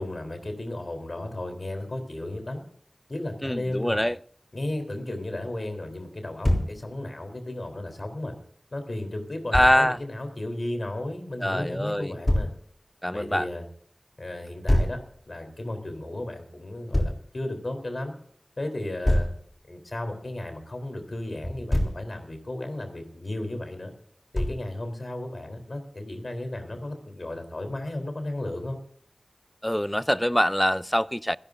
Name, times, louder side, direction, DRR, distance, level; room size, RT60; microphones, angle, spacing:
voice 1, 0.0-2.6 3.1-4.0 4.5-8.3 8.7-12.5 13.1-13.6 14.2-15.0 15.3-18.1 18.6-19.3 19.7-23.9 24.3-28.8, left 1 dB, 60° left, 3.5 m, -34 dB
voice 2, 3.4-4.2 9.5-10.0 11.4-12.1 13.0-13.5 29.6-31.4, equal, 10° left, 0.4 m, -24 dB
Thump thud, 6.4-6.7 9.5-9.7 12.3-12.5 14.7-15.0 16.9-17.2 19.0-19.4 21.4-22.0 24.3-24.7, left 1 dB, 30° left, 3.3 m, -23 dB
26.0 x 11.5 x 2.6 m
wide cardioid pair, 55°, 0 cm